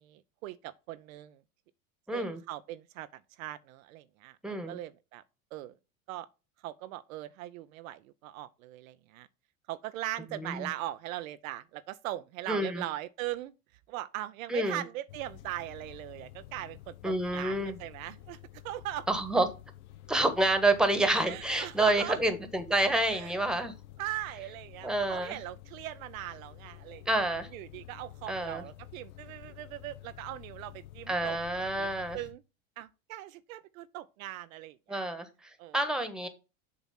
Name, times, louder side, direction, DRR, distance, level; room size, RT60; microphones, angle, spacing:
voice 1, 0.0-1.4 2.1-5.2 5.5-5.7 6.1-6.3 6.6-9.3 9.7-13.5 13.9-18.4 18.6-19.1 21.3-22.2 23.1-23.4 24.0-27.1 27.5-31.4 31.8-31.9 32.1-32.4 32.8-35.0 35.6-35.8, right 14 dB, 70° right, 0.6 m, -40 dB
voice 2, 2.1-2.4 4.4-4.8 10.3-10.7 12.5-12.8 14.5-14.8 17.0-17.8 19.1-19.5 20.1-23.7 24.8-25.4 27.1-27.5 28.3-28.6 31.1-32.2 34.9-36.3, right 1 dB, ahead, 1.3 m, -28 dB
sound 1, 15.1-32.3, left 13 dB, 70° left, 0.9 m, -50 dB
7.3 x 3.0 x 5.7 m
hypercardioid pair, 85°, 43 cm